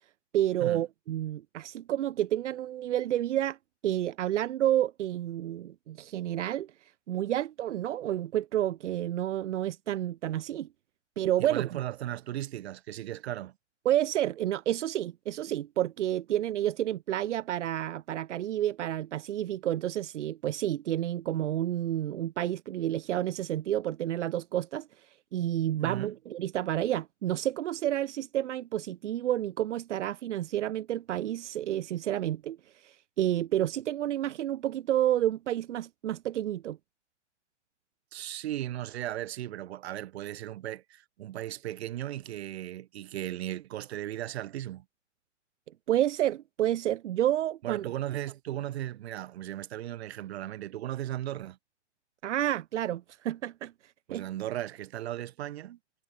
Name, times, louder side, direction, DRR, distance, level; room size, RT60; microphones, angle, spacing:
voice 1, 0.3-3.6 3.8-6.7 7.1-10.7 11.2-11.8 13.8-24.9 25.3-36.8 45.9-47.9 52.2-53.7 54.1-54.2, right 12 dB, 80° right, 0.6 m, -30 dB
voice 2, 11.4-13.5 25.8-26.1 38.1-44.8 47.6-51.6 54.1-55.8, right 13 dB, 60° right, 0.8 m, -36 dB
hypercardioid pair, 145°, 35 cm